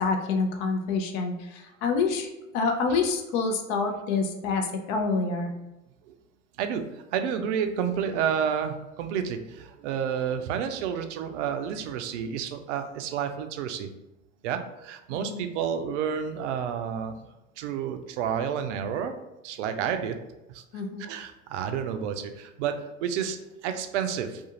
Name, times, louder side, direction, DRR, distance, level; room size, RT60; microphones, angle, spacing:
voice 1, 0.0-2.3 2.5-5.5 15.1-15.4 20.7-21.1, left 4 dB, 45° left, 4 dB, 0.5 m, -27 dB
voice 2, 6.6-13.9 14.4-17.2 17.6-19.1 19.4-20.3 20.5-20.6 21.0-24.4, right 8 dB, 65° right, 7 dB, 0.5 m, -30 dB
2.5 x 2.4 x 2.8 m, 0.97 s
hypercardioid pair, 85°, 39 cm